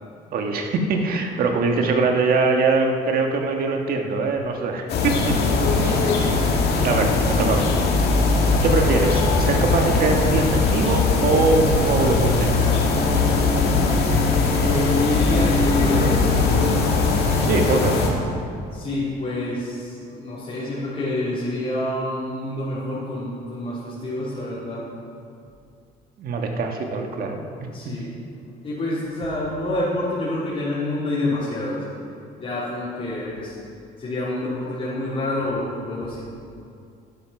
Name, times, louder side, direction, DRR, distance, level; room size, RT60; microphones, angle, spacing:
voice 1, 0.3-5.4 5.8-6.4 6.8-7.7 8.6-12.5 17.4-18.0 26.2-27.9, right 3 dB, 60° right, 3 dB, 1.6 m, -23 dB
sound 1, 4.9-18.1, left 3 dB, 70° left, 2.1 m, -20 dB
voice 2, 14.5-16.5 18.7-24.8 27.7-28.1 28.6-31.8 32.3-33.5 34.0-36.2, left 1 dB, 35° left, -11 dB, 3.5 m, -27 dB
11.5 x 9.1 x 5.9 m, 2.4 s
cardioid pair, 110°, 17 cm